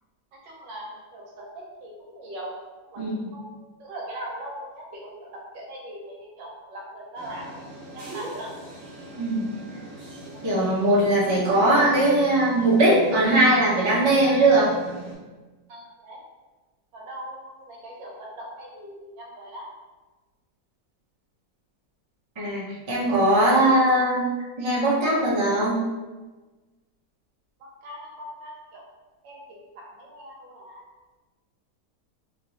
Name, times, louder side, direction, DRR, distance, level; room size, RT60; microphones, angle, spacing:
voice 1, 0.4-2.6 2.8-3.0 3.3-8.5 15.7-16.2 16.9-19.6 27.8-28.8 29.2-30.8, right 1 dB, 75° right, -2 dB, 1.5 m, -40 dB
sound 1, 7.1-15.1, right 3 dB, 45° right, 1.1 m, -40 dB
voice 2, 10.4-14.7 22.4-24.3 24.6-25.8, right 1 dB, 30° right, -7 dB, 0.5 m, -20 dB
3.2 x 3.1 x 2.9 m, 1.2 s
omnidirectional pair, 2.0 m